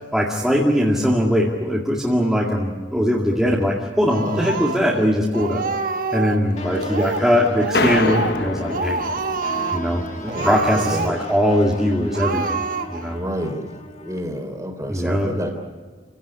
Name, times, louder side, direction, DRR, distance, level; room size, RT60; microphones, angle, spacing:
voice 1, 0.1-5.7 6.1-9.1 9.5-10.1 10.4-12.6 12.9-13.2 14.9-15.3, equal, ahead, -5 dB, 2.2 m, -20 dB
Speech, 4.1-5.0 5.3-6.5 6.8-7.3 7.6-8.4 8.7-9.9 10.3-11.4 11.7-11.8 12.1-13.1, right 4 dB, 45° right, 1.3 m, -27 dB
sound 1, 6.6-14.2, left 1 dB, 35° left, 1.8 m, -36 dB
sound 2, 7.7-10.2, left 3 dB, 55° left, 1.1 m, -26 dB
voice 2, 10.2-11.1 13.1-13.6 13.9-15.5, equal, 15° right, 5 dB, 3.5 m, -29 dB
29.0 x 17.0 x 9.8 m, 1.4 s
head